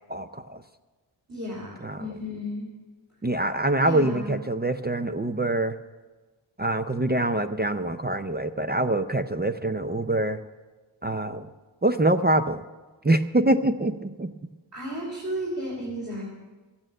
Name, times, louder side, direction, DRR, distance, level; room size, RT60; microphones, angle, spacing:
voice 1, 0.1-0.6 1.8-2.1 3.2-5.8 6.6-10.4 11.0-11.5 11.8-12.6 13.0-14.3, right 1 dB, 20° right, 8 dB, 0.5 m, -25 dB
voice 2, 1.3-2.7 3.8-4.4 14.7-16.2, equal, 40° right, -4 dB, 3.2 m, -33 dB
14.0 x 8.8 x 7.7 m, 1.2 s
wide cardioid pair, 60°, 46 cm